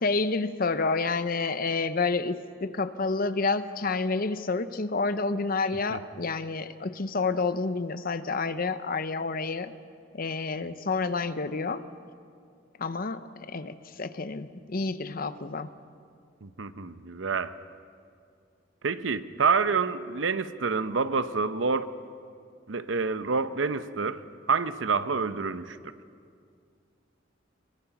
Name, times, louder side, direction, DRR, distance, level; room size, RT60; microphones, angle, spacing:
voice 1, 0.0-9.7 10.1-11.8 12.8-15.7, left 3 dB, 50° left, 12 dB, 0.8 m, -29 dB
voice 2, 16.4-17.6 18.8-21.9 22.7-25.8, right 5 dB, 90° right, 12 dB, 0.8 m, -28 dB
22.5 x 22.0 x 5.9 m, 2.3 s
head